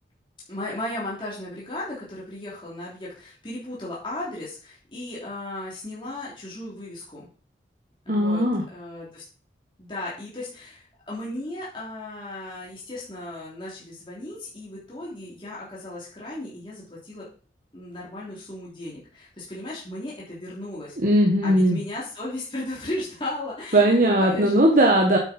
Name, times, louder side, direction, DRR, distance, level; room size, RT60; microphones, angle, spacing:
voice 1, 0.5-7.3 8.1-9.2 9.8-17.2 17.7-21.0 21.4-24.5, left 1 dB, 30° left, -6 dB, 3.3 m, -36 dB
voice 2, 8.1-8.6 21.0-21.8 23.7-25.2, right 1 dB, 45° right, 0 dB, 1.6 m, -18 dB
9.3 x 8.4 x 4.5 m, 0.39 s
head